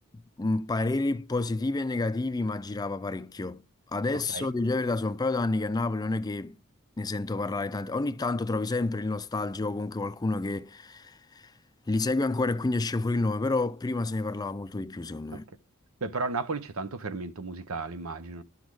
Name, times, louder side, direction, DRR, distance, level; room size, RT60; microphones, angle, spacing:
voice 1, 0.4-3.6 3.9-6.6 7.0-11.5 11.9-15.4, left 2 dB, 20° left, 0.4 m, -29 dB
voice 2, 16.0-18.4, right 3 dB, 85° right, 0.9 m, -34 dB
12.0 x 6.1 x 4.7 m
head